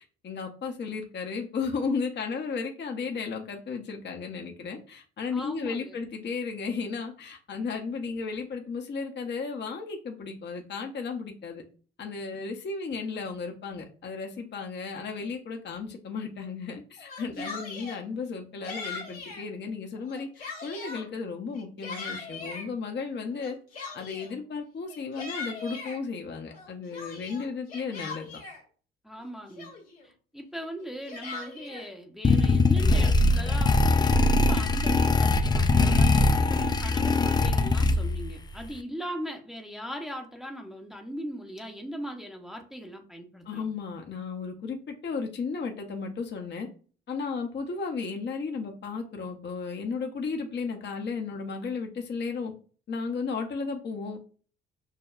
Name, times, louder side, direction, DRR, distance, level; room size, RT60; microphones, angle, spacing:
voice 1, 0.2-11.6 12.0-23.6 23.9-28.4 43.5-46.7 47.1-52.5 52.9-54.2, left 5 dB, 35° left, 3 dB, 0.8 m, -34 dB
voice 2, 5.3-6.0 17.2-17.5 29.0-29.7 30.0-43.7, equal, ahead, 2 dB, 0.8 m, -39 dB
Yell, 17.0-18.0 18.6-19.4 20.0-21.0 21.5-22.7 23.4-24.4 24.9-26.0 26.5-28.6 29.2-29.3 29.6-30.1 30.8-31.9, left 4 dB, 85° left, 1.2 m, -40 dB
sound 1, 32.2-38.3, left 2 dB, 15° left, 0.3 m, -22 dB
6.4 x 2.2 x 2.4 m, 0.40 s
hypercardioid pair, 50°, 29 cm